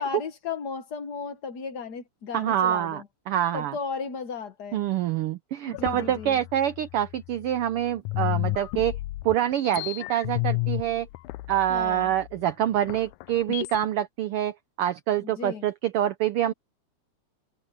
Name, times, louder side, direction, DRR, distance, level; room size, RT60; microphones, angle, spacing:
voice 1, 0.0-3.1 3.5-4.8 5.7-6.4 11.7-12.1 15.2-15.7, left 5 dB, 55° left, 1.1 m, -35 dB
voice 2, 2.3-3.7 4.7-9.0 9.2-11.1 11.5-16.5, right 11 dB, 90° right, 1.2 m, -26 dB
sound 1, 5.7-7.7 8.0-13.9, left 21 dB, 90° left, 2.0 m, -32 dB
omnidirectional pair, 3.4 m